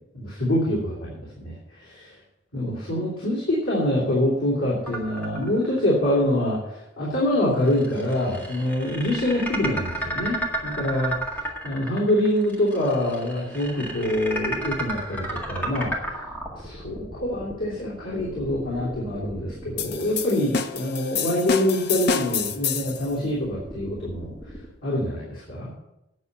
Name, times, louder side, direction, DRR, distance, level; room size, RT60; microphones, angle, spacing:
voice 1, 0.1-2.1 2.5-11.1 11.6-15.9 16.5-24.3 24.8-25.7, left 1 dB, 85° left, -6 dB, 3.1 m, -25 dB
sound 1, 4.9-5.9 6.3-6.4 7.6-20.6 21.9-24.7, right 1 dB, 10° left, 1.9 m, -33 dB
sound 2, 19.8-23.1, left 6 dB, 50° left, 0.7 m, -28 dB
9.6 x 6.8 x 7.9 m, 0.89 s
head